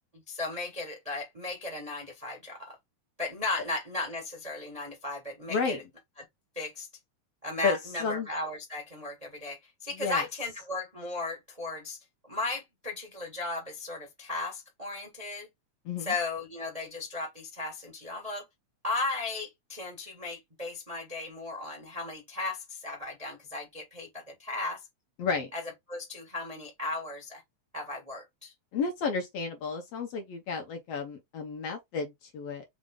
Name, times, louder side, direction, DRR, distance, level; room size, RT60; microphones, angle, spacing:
voice 1, 0.3-2.7 3.2-5.8 6.5-6.9 7.4-12.0 12.3-15.5 16.0-18.4 18.8-24.8 25.5-25.6 25.9-27.4 27.7-28.5, left 3 dB, 25° right, 0.8 m, -36 dB
voice 2, 5.5-5.8 7.6-8.3 10.0-10.2 15.9-16.1 25.2-25.5 28.7-32.6, left 5 dB, 65° left, 1.7 m, -32 dB
5.1 x 2.6 x 3.6 m
omnidirectional pair, 3.3 m